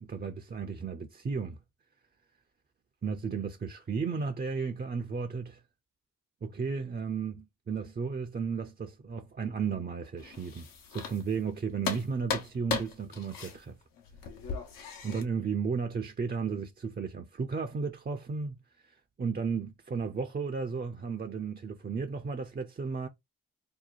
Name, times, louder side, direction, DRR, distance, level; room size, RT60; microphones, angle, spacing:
voice 1, 0.0-1.6 3.0-5.6 6.4-13.8 15.0-23.1, right 5 dB, 30° right, 0.6 m, -34 dB
sound 1, 10.2-11.5 11.8-15.2, left 6 dB, 75° left, 1.0 m, -37 dB
2.8 x 2.2 x 4.1 m
supercardioid pair, 45°, 34 cm